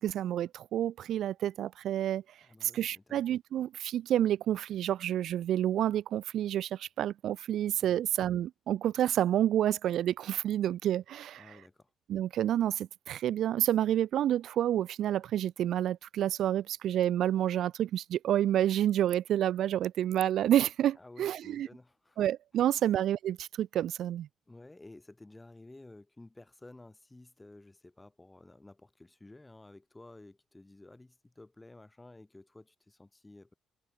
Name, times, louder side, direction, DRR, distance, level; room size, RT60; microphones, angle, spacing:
voice 1, 0.0-2.2 2.6-11.4 12.1-21.7 22.2-24.3, right 11 dB, 75° right, 0.4 m, -29 dB
voice 2, 2.4-3.2 7.8-8.0 11.4-11.9 21.0-22.2 22.7-22.8 24.5-33.5, left 2 dB, 15° left, 3.6 m, -53 dB
cardioid pair, 115°, 0 cm